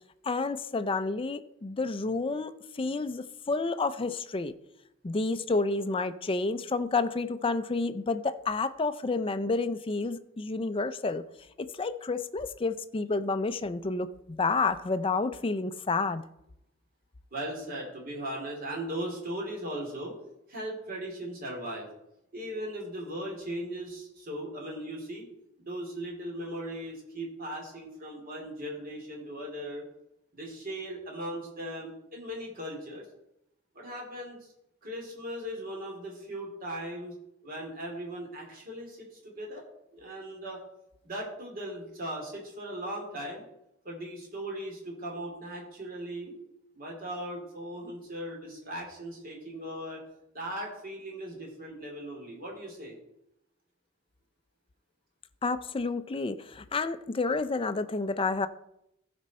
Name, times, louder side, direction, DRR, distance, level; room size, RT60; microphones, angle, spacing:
voice 1, 0.2-4.5 5.0-11.2 11.6-16.2 55.4-58.5, left 3 dB, 25° left, 0.5 m, -30 dB
voice 2, 17.3-20.2 20.5-21.9 22.3-25.2 25.6-29.8 30.3-33.0 33.7-34.5 34.8-37.2 37.4-39.7 39.9-40.6 41.0-43.4 43.8-46.3 46.7-50.0 50.3-53.0, right 1 dB, 45° right, 3.0 m, -38 dB
15.0 x 5.2 x 4.3 m
head